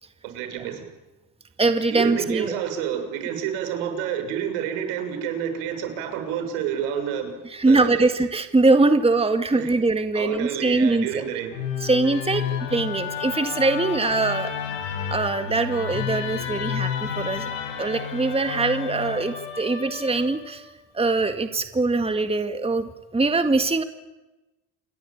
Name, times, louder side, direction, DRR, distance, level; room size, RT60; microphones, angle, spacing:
voice 1, 0.2-0.8 1.9-7.4 7.6-8.1 9.6-9.7 10.1-11.5, right 9 dB, 75° right, 7 dB, 6.7 m, -29 dB
voice 2, 1.6-2.6 7.5-11.2 11.8-12.4 12.7-14.5 15.1-20.6 20.9-23.8, right 3 dB, 10° right, 8 dB, 2.0 m, -22 dB
Musical instrument, 11.5-20.7, left 8 dB, 85° left, 6.6 m, -31 dB
28.5 x 22.0 x 8.8 m, 1.1 s
supercardioid pair, 90°, 49 cm